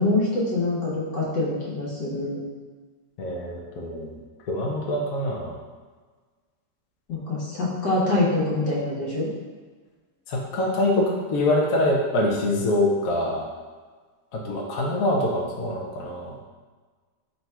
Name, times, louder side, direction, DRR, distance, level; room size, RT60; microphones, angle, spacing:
voice 1, 0.0-2.4 7.1-9.3, left 2 dB, 80° left, -6 dB, 1.7 m, -25 dB
voice 2, 3.2-4.2 4.5-5.5 10.3-13.5 14.3-16.3, left 1 dB, 65° left, -3 dB, 1.0 m, -24 dB
4.0 x 2.3 x 4.3 m, 1.4 s
omnidirectional pair, 1.8 m